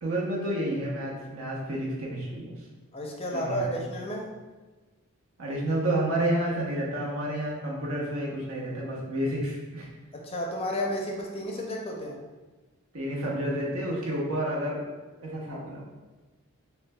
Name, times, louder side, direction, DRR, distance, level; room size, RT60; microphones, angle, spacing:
voice 1, 0.0-2.6 3.3-3.8 5.4-9.9 12.9-14.9 15.2-15.9, right 1 dB, 85° right, -4 dB, 1.0 m, -30 dB
voice 2, 2.9-4.3 10.1-12.1, equal, 25° left, 0 dB, 0.5 m, -32 dB
6.3 x 2.2 x 2.2 m, 1.2 s
head